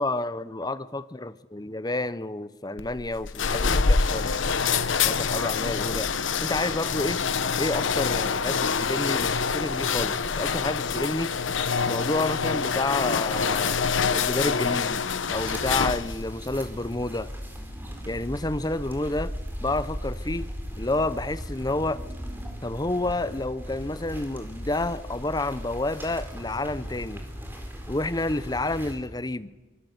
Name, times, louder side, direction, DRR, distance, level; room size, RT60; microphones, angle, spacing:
voice 1, 0.0-4.3 5.0-6.1 6.4-7.2 7.6-11.3 11.9-13.8 14.1-15.0 15.3-17.3 18.0-19.3 19.6-20.5 20.8-22.0 22.6-27.2 27.9-29.5, left 2 dB, 20° left, 14 dB, 0.8 m, -29 dB
sound 1, 2.8-16.3, left 5 dB, 75° left, 1.0 m, -26 dB
sound 2, 15.3-29.0, equal, 10° right, 4.2 m, -37 dB
24.5 x 24.0 x 8.0 m, 1.3 s
head